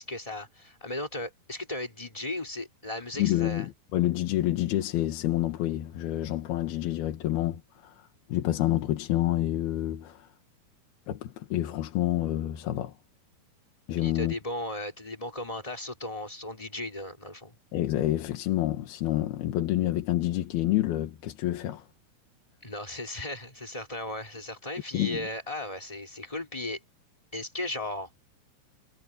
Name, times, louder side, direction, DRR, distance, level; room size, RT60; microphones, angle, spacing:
voice 1, 0.0-3.7 14.0-17.5 22.6-26.8 27.3-28.1, left 1 dB, 10° left, 3.1 m, -36 dB
voice 2, 3.2-10.3 11.1-13.0 13.9-14.3 17.7-21.9 24.9-25.3, left 14 dB, 85° left, 3.3 m, -28 dB
omnidirectional pair, 4.4 m